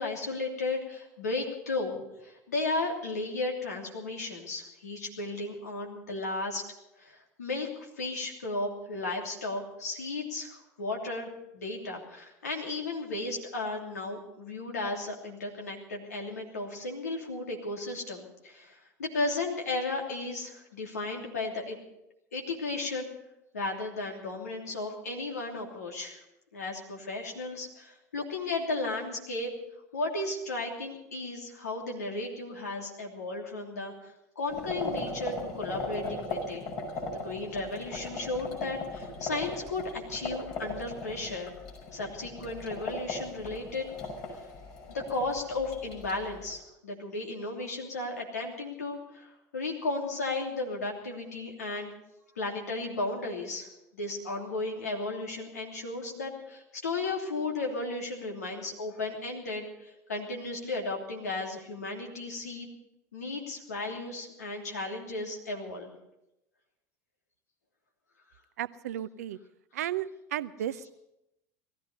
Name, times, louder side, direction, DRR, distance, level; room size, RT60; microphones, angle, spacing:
voice 1, 0.0-6.6 7.0-21.8 22.3-23.1 23.5-26.2 26.5-29.5 29.9-36.6 37.1-41.5 41.9-43.8 44.9-51.9 52.3-62.7 63.1-65.9, left 2 dB, 80° left, 1 dB, 3.0 m, -34 dB
sound 1, 34.5-46.5, left 2 dB, 55° left, 6.1 m, -38 dB
voice 2, 68.6-69.4 69.7-70.9, right 11 dB, 70° right, 16 dB, 0.6 m, -34 dB
18.5 x 14.5 x 5.5 m, 0.87 s
figure-of-eight pair, 75°, 9 cm